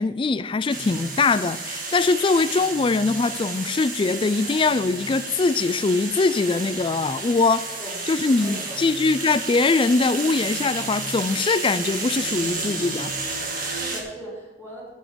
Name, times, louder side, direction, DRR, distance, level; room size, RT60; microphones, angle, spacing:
voice 1, 0.0-7.7 8.1-13.1, left 3 dB, 30° left, 0.4 m, -22 dB
sound 1, 0.7-14.0, right 3 dB, 50° right, 1.9 m, -31 dB
voice 2, 8.4-8.8 13.5-14.9, right 1 dB, 15° right, 4.2 m, -39 dB
13.0 x 7.4 x 5.2 m
head